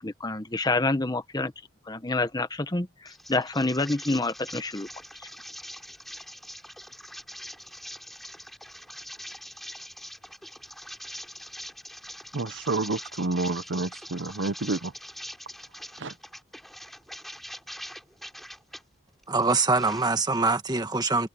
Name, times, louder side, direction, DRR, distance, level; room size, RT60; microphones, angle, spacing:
voice 1, 0.0-1.5 1.9-4.9, left 2 dB, 20° left, 1.0 m, -27 dB
sound 1, 3.1-18.8 19.2-20.5, equal, ahead, 5.4 m, -43 dB
voice 2, 12.3-14.9 16.0-16.1, right 3 dB, 65° right, 0.9 m, -29 dB
voice 3, 19.3-21.3, right 3 dB, 20° right, 1.7 m, -24 dB
head